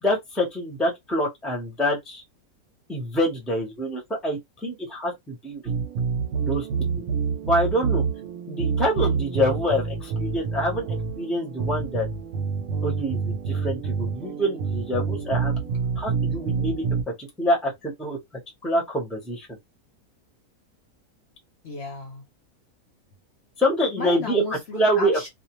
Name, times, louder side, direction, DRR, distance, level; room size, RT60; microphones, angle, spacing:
voice 1, 0.0-2.2 2.9-5.6 6.4-6.7 7.0-7.1 7.4-8.0 8.5-10.9 11.2-12.1 12.8-15.5 16.0-16.8 17.2-18.2 18.6-19.5 23.6-24.4 24.7-25.3, equal, ahead, 0.6 m, -26 dB
sound 1, 5.7-17.0, right 5 dB, 60° right, 0.9 m, -27 dB
voice 2, 15.6-16.1 21.6-22.2 24.0-25.3, left 3 dB, 55° left, 0.8 m, -35 dB
2.5 x 2.0 x 3.0 m
omnidirectional pair, 1.6 m